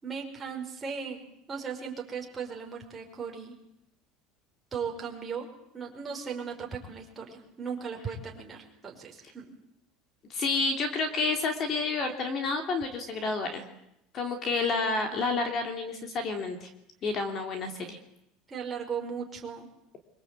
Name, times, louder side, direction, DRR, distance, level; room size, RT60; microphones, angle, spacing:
voice 1, 0.0-1.2 1.5-3.6 4.7-5.5 5.7-9.5 18.5-19.7, right 6 dB, 15° right, 0 dB, 5.2 m, -37 dB
voice 2, 10.3-13.6 14.1-16.7 17.0-18.0, left 3 dB, 35° left, 6 dB, 3.2 m, -30 dB
25.0 x 24.5 x 8.4 m, 0.81 s
cardioid pair, 155°, 0 cm